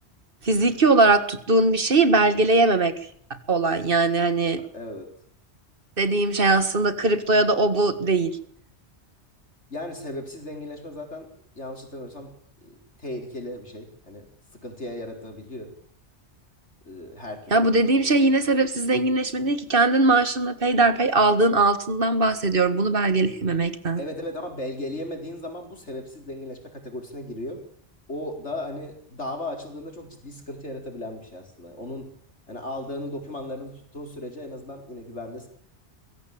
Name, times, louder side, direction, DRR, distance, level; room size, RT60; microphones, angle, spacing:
voice 1, 0.4-2.9 3.5-4.6 6.0-8.4 17.5-24.0, right 2 dB, 50° right, 12 dB, 2.0 m, -20 dB
voice 2, 4.7-5.1 9.7-11.3 11.5-12.3 12.6-14.3 14.5-15.7 16.8-18.2 24.0-27.6 28.1-32.1 32.5-35.5, left 1 dB, 80° left, 4 dB, 4.9 m, -36 dB
22.5 x 16.0 x 8.6 m, 0.63 s
omnidirectional pair, 1.2 m